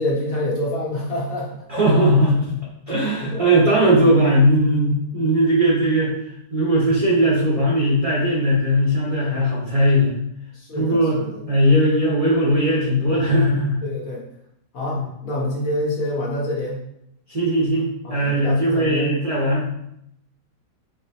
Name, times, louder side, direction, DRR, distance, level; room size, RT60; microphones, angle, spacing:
voice 1, 0.0-1.6 3.2-3.4 10.5-11.4 13.8-14.2 14.7-16.8 18.0-19.1, left 1 dB, 55° left, -4 dB, 1.4 m, -26 dB
voice 2, 1.7-2.6 2.9-6.1 6.5-10.1 10.7-11.2 11.5-13.8 14.9-15.0 17.3-19.7, equal, 30° right, -6 dB, 0.7 m, -18 dB
4.7 x 2.9 x 2.8 m, 0.77 s
omnidirectional pair, 1.8 m